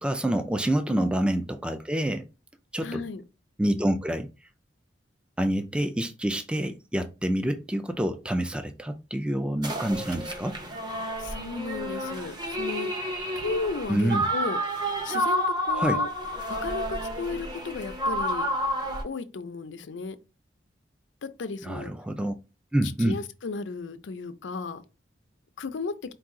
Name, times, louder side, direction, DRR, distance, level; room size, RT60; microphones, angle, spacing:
voice 1, 0.0-2.3 2.7-3.0 3.6-4.3 5.4-10.6 13.9-14.2 15.7-16.0 21.6-22.3 22.7-23.2, right 1 dB, 5° right, 0.3 m, -27 dB
voice 2, 2.8-3.2 11.2-12.9 13.4-14.6 15.0-16.1 16.6-18.5 19.0-20.2 21.4-21.9 23.0-24.8 25.6-25.9, left 4 dB, 85° left, 0.5 m, -34 dB
sound 1, 9.6-19.0, equal, 25° right, 0.7 m, -30 dB
4.7 x 2.3 x 3.7 m
head